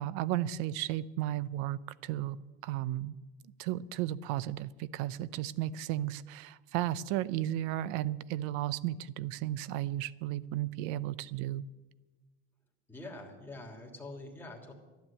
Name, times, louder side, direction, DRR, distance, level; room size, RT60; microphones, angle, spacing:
voice 1, 0.0-2.4 2.6-3.2 3.6-11.7, right 13 dB, 75° right, 19 dB, 0.7 m, -34 dB
voice 2, 12.9-14.7, left 2 dB, 5° left, 0 dB, 3.0 m, -45 dB
13.5 x 11.5 x 8.8 m, 1.2 s
cardioid pair, 130°, 30 cm